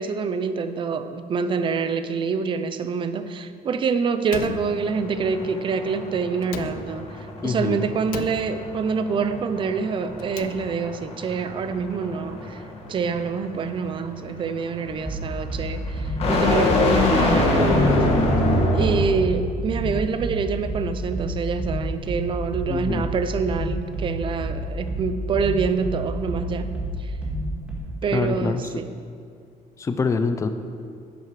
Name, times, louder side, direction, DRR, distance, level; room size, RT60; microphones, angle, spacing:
voice 1, 0.0-12.6 12.9-18.0 18.7-26.7 27.0-27.2 28.0-28.9, right 5 dB, 35° right, 11 dB, 0.5 m, -26 dB
Slam, 4.3-5.4 6.4-7.3 8.1-9.0 10.1-11.1, left 9 dB, 70° left, 0.5 m, -37 dB
sound 1, 4.6-19.2, left 2 dB, 45° left, 1.7 m, -25 dB
voice 2, 7.4-7.8 22.7-23.1 28.1-28.6 29.8-30.5, left 4 dB, 20° left, 8 dB, 0.5 m, -24 dB
sound 2, 14.9-27.8, right 1 dB, 10° right, 1.9 m, -30 dB
10.5 x 7.8 x 4.8 m, 2.2 s
cardioid pair, 150°, 15 cm